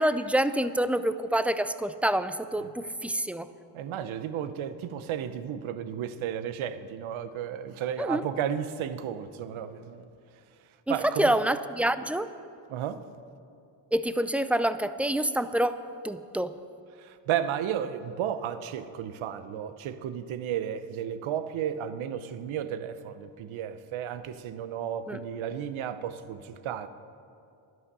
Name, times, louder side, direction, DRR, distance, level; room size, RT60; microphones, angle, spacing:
voice 1, 0.0-3.5 8.0-8.2 10.9-12.3 13.9-16.5 25.1-25.2, right 1 dB, 5° right, 0.4 m, -27 dB
voice 2, 3.7-10.1 10.9-11.3 12.7-13.0 17.0-26.9, right 9 dB, 80° right, 0.9 m, -33 dB
11.5 x 11.0 x 6.7 m
cardioid pair, 80°, 48 cm